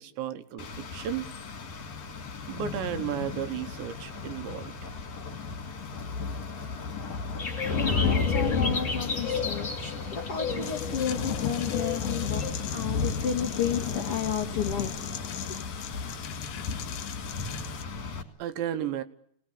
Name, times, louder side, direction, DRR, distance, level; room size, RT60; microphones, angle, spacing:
voice 1, 0.0-1.3 2.5-4.9 18.4-19.0, right 10 dB, 75° right, 10 dB, 3.3 m, -34 dB
Rain, 0.6-18.2, left 5 dB, 45° left, 3.1 m, -33 dB
sound 1, 7.4-12.5, left 4 dB, 25° left, 1.7 m, -34 dB
voice 2, 7.7-14.9 15.4-15.5, left 8 dB, 60° left, 2 dB, 1.5 m, -32 dB
sound 2, 10.6-17.8, left 10 dB, 80° left, 1.8 m, -41 dB
27.5 x 19.5 x 8.7 m, 0.68 s
omnidirectional pair, 5.4 m